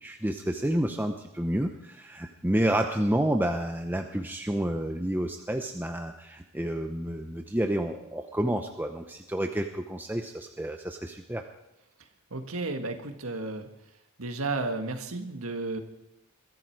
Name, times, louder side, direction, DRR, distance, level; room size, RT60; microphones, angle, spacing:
voice 1, 0.0-11.4, right 1 dB, 10° right, 4 dB, 0.8 m, -29 dB
voice 2, 12.3-13.7 14.2-15.8, right 3 dB, 80° right, 6 dB, 1.8 m, -33 dB
22.0 x 13.5 x 4.7 m, 0.87 s
head